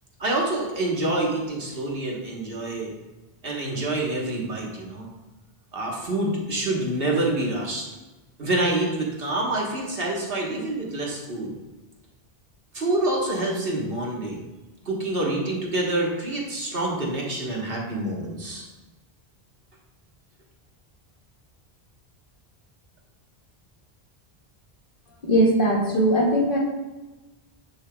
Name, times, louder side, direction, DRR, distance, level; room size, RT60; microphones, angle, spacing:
voice 1, 0.2-2.9 3.4-5.1 5.7-7.8 8.4-11.5 12.7-14.4 14.9-18.7, right 2 dB, 65° right, -2 dB, 1.5 m, -27 dB
voice 2, 25.2-26.6, right 1 dB, 55° left, -2 dB, 1.6 m, -20 dB
10.0 x 5.5 x 2.3 m, 1.1 s
omnidirectional pair, 1.0 m